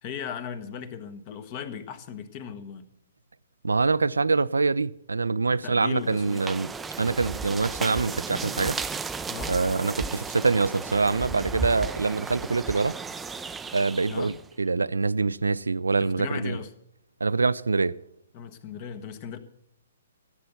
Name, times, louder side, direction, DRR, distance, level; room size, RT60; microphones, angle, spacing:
voice 1, 0.0-2.9 5.5-6.5 9.3-9.6 14.1-14.3 16.0-16.7 18.3-19.4, left 7 dB, 35° left, 1.2 m, -37 dB
voice 2, 3.6-6.7 7.0-8.8 9.5-13.0 13.7-16.6 17.2-18.0, right 4 dB, 75° right, 0.4 m, -25 dB
sound 1, 6.1-14.5, right 4 dB, 10° right, 0.5 m, -34 dB
15.0 x 7.9 x 6.9 m
figure-of-eight pair, 120°, 0 cm